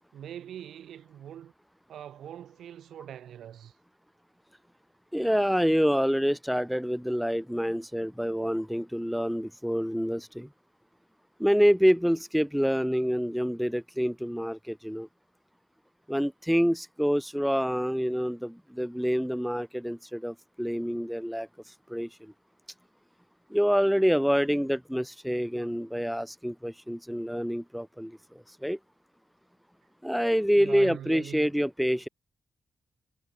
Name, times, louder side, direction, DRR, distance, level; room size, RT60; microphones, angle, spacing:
voice 1, 0.1-1.5 1.9-3.7 30.6-31.5, right 10 dB, 85° right, 2.9 m, -42 dB
voice 2, 5.1-10.5 11.4-15.1 16.1-22.3 23.5-28.8 30.0-32.1, equal, ahead, 0.4 m, -27 dB
cardioid pair, 115°, 0 cm